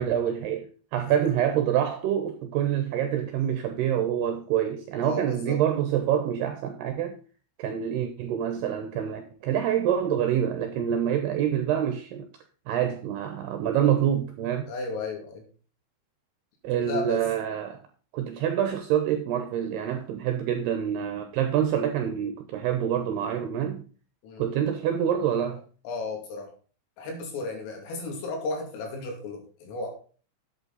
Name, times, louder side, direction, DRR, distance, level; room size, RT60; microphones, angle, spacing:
voice 1, 0.0-7.2 7.6-12.3 12.7-14.7 16.6-17.8 18.1-23.8 24.4-25.6, right 9 dB, 80° right, 2.4 m, -26 dB
voice 2, 5.0-5.6 14.7-15.4 16.8-17.2 24.2-24.5 25.9-26.5 27.0-29.9, left 3 dB, 90° left, 5.3 m, -34 dB
11.0 x 8.3 x 4.1 m
omnidirectional pair, 5.7 m